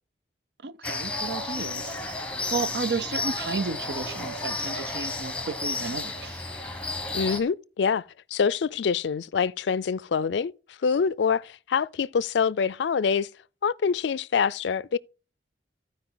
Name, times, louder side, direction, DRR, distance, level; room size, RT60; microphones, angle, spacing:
voice 1, 0.6-2.0 2.5-6.4, right 4 dB, 65° right, 0.5 m, -32 dB
sound 1, 0.8-7.4, left 2 dB, 5° left, 1.0 m, -32 dB
voice 2, 7.1-8.0 8.3-13.3 13.6-15.0, left 6 dB, 75° left, 0.4 m, -25 dB
14.5 x 4.9 x 3.9 m
head